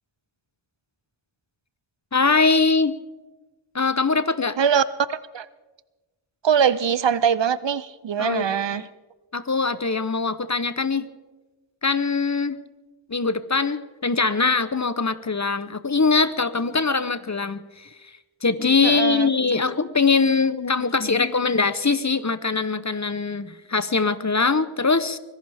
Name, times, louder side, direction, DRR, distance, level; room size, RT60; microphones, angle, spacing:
voice 1, 2.1-3.0 3.7-4.6 8.2-8.4 8.7-8.9 9.3-11.1 11.8-12.6 13.1-17.9 18.4-25.2, left 4 dB, 35° left, 14 dB, 0.8 m, -22 dB
voice 2, 4.6-5.5 6.4-8.8 18.8-19.3, right 7 dB, 60° right, 17 dB, 0.6 m, -22 dB
24.5 x 17.0 x 3.5 m, 1.2 s
wide cardioid pair, 50°, 49 cm